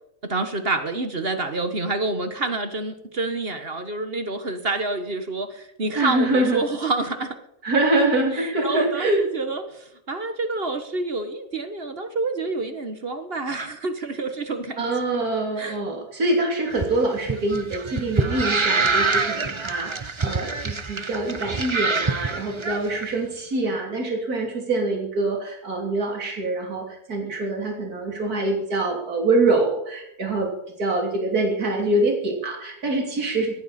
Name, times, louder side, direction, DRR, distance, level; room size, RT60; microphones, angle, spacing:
voice 1, 0.2-7.4 8.3-14.8 15.1-15.3 15.6-15.8, right 3 dB, 40° right, 9 dB, 1.5 m, -28 dB
voice 2, 6.0-6.6 7.6-9.2 14.8-30.5 30.8-33.6, right 2 dB, 75° right, 1 dB, 3.6 m, -24 dB
sound 1, 16.7-23.0, right 4 dB, 25° right, 0.7 m, -25 dB
19.0 x 14.5 x 4.3 m, 0.80 s
omnidirectional pair, 1.6 m